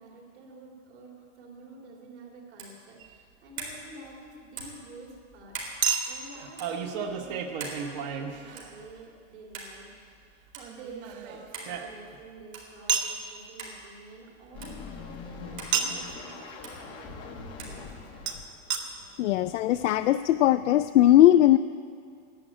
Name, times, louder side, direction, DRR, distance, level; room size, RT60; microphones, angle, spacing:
voice 1, 0.0-10.3 10.7-18.3, right 3 dB, 60° right, -1 dB, 3.7 m, -49 dB
sound 1, 2.6-2.8 3.6-3.8 4.6-4.8 5.5-5.8 6.5-6.7 7.6-7.8 8.6-8.8 9.5-9.7 10.5-10.7 11.5-11.7 12.5-12.7 13.6-13.8 14.6-14.8 15.6-15.8 16.6-16.8 17.6-17.8, right 4 dB, 90° right, 4.1 m, -40 dB
Chink clink, 3.0-3.1 5.8-9.0 10.6-12.2 12.9-13.2 15.7-16.1 18.3-18.4 18.7-18.8 19.5-19.6 19.7-19.8, right 7 dB, 30° right, 0.9 m, -31 dB
sound 2, 14.5-19.4 19.9-20.0, left 5 dB, 15° left, 0.6 m, -43 dB
voice 2, 19.2-21.6, left 13 dB, 70° left, 10 dB, 0.5 m, -19 dB
11.5 x 10.0 x 8.8 m, 2.2 s
supercardioid pair, 175°, 39 cm